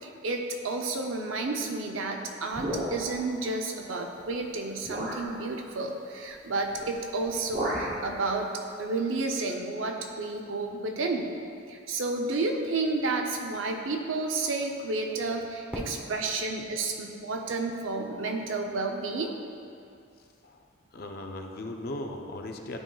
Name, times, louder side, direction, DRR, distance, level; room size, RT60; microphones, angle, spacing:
voice 1, 0.0-8.5 8.8-11.3 11.7-19.3, right 3 dB, 80° right, 3 dB, 0.6 m, -31 dB
sound 1, 2.5-3.3 4.2-4.3 4.8-5.3 6.7-7.0 7.2-8.0, equal, 40° right, 0.8 m, -33 dB
Fireworks, 15.7-18.6, equal, 10° right, 0.7 m, -44 dB
voice 2, 20.9-22.8, left 1 dB, 50° left, 3 dB, 0.5 m, -37 dB
11.0 x 3.7 x 2.3 m, 2.4 s
head